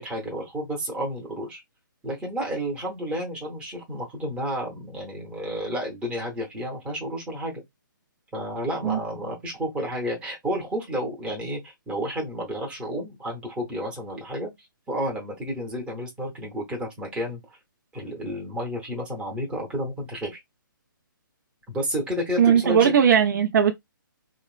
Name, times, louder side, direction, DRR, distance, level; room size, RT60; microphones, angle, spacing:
voice 1, 0.0-1.6 2.0-7.5 8.3-14.5 14.9-17.4 17.9-20.4 21.7-22.9, equal, 10° right, 0.8 m, -31 dB
voice 2, 22.4-23.8, right 8 dB, 60° right, 0.4 m, -18 dB
2.8 x 2.0 x 2.3 m
hypercardioid pair, 145°, 11 cm